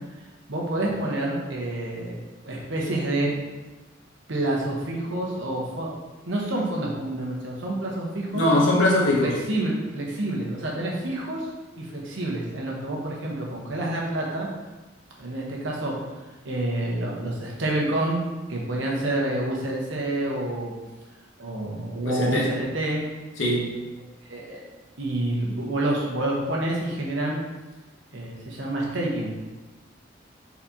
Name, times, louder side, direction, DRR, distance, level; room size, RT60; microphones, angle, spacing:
voice 1, 0.5-3.4 4.3-5.9 6.3-8.4 9.0-11.5 11.8-14.5 15.2-16.1 16.4-18.2 18.5-20.7 21.4-23.0 24.0-24.6 25.0-27.4 28.1-29.3, right 1 dB, 80° right, -2 dB, 1.1 m, -28 dB
voice 2, 8.3-9.3 22.0-22.4 23.4-23.7, left 1 dB, 85° left, -3 dB, 1.1 m, -21 dB
4.5 x 4.2 x 2.8 m, 1.2 s
head